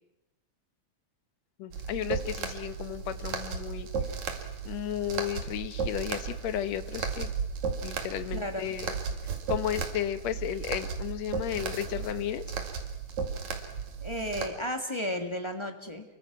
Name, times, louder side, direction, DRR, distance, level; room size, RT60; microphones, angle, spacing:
voice 1, 1.6-3.9 4.6-7.3 7.8-8.9 9.2-12.4, left 11 dB, 70° left, 11 dB, 2.3 m, -33 dB
sound 1, 1.7-14.5, right 6 dB, 70° right, 3.4 m, -35 dB
voice 2, 8.3-8.6 14.0-16.0, equal, 15° left, 5 dB, 1.1 m, -33 dB
29.0 x 23.0 x 6.0 m, 0.95 s
omnidirectional pair, 3.4 m